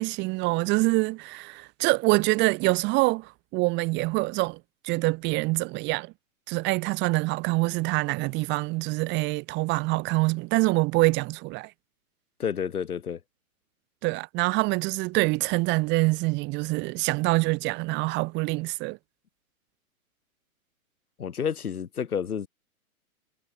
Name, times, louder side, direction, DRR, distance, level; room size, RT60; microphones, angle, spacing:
voice 1, 0.0-4.6 4.8-6.1 6.5-11.7 14.0-19.0, right 23 dB, 25° right, 1.7 m, -25 dB
voice 2, 12.4-13.2 21.2-22.5, left 7 dB, 85° left, 2.4 m, -30 dB
hypercardioid pair, 145°, 43 cm